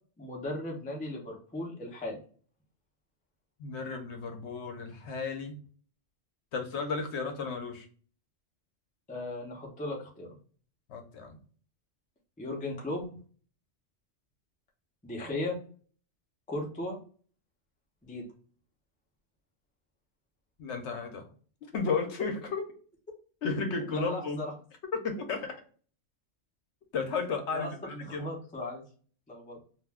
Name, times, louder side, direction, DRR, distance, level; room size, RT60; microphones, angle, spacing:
voice 1, 0.2-2.2 9.1-10.4 12.4-13.1 15.0-15.6 16.5-17.0 18.0-18.3 23.9-24.5 27.5-27.7 28.0-28.8 29.3-29.6, left 1 dB, 10° left, -1 dB, 0.5 m, -36 dB
voice 2, 3.6-5.6 6.5-7.9 10.9-11.4 20.6-21.3 21.7-22.7 23.4-24.4 25.0-25.6 26.9-28.3, left 4 dB, 70° left, 4 dB, 0.9 m, -33 dB
2.4 x 2.2 x 3.3 m, 0.43 s
omnidirectional pair, 1.3 m